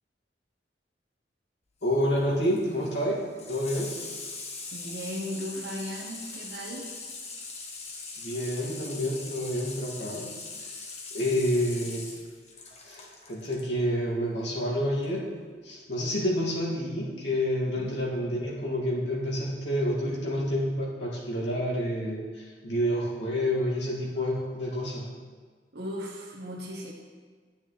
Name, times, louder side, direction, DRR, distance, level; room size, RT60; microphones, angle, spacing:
voice 1, 1.8-4.0 8.2-10.3 11.1-12.1 12.8-15.3 15.6-25.1, equal, 70° left, -4 dB, 2.1 m, -29 dB
Water tap faucet / Sink (filling or washing), 1.8-13.7 15.0-15.1, left 3 dB, 35° left, 1.0 m, -41 dB
voice 2, 4.7-6.9 11.3-11.6 17.8-18.0 25.7-26.9, equal, 60° right, -3 dB, 0.9 m, -37 dB
9.7 x 9.1 x 3.2 m, 1.5 s
head